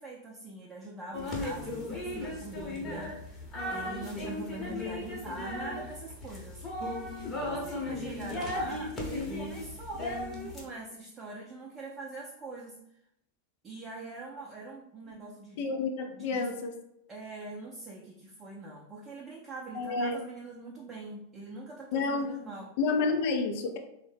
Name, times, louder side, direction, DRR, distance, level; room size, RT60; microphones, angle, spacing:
voice 1, 0.0-6.7 7.4-10.1 10.5-12.8 13.6-15.7 16.1-16.5 17.1-22.7, right 2 dB, 20° right, -3 dB, 0.5 m, -43 dB
sound 1, 1.1-10.6, left 1 dB, 20° left, 0.9 m, -36 dB
voice 2, 15.6-16.7 19.7-20.1 21.9-22.3 22.8-23.8, left 4 dB, 50° left, 5 dB, 0.4 m, -29 dB
3.4 x 2.1 x 3.3 m, 0.77 s
figure-of-eight pair, 90°, 0 cm